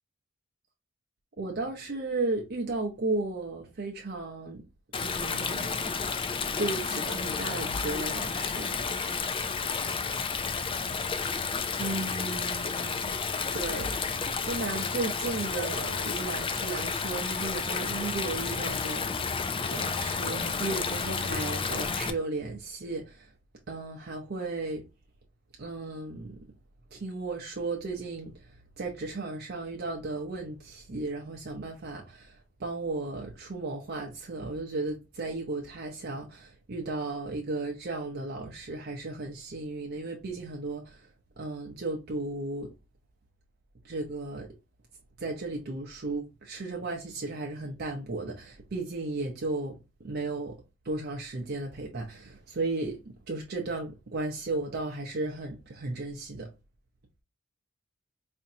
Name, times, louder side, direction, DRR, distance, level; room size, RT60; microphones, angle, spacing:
voice 1, 1.4-4.6 5.0-5.8 6.6-8.7 11.8-13.1 13.5-14.0 14.4-19.1 19.7-23.3 23.7-24.9 25.6-26.5 26.9-41.1 41.4-42.7 43.8-44.5 45.2-49.8 50.0-56.5, right 3 dB, 55° right, 0.6 m, -35 dB
Stream, 4.9-22.1, left 5 dB, 25° left, 0.4 m, -31 dB
4.3 x 2.6 x 2.7 m
head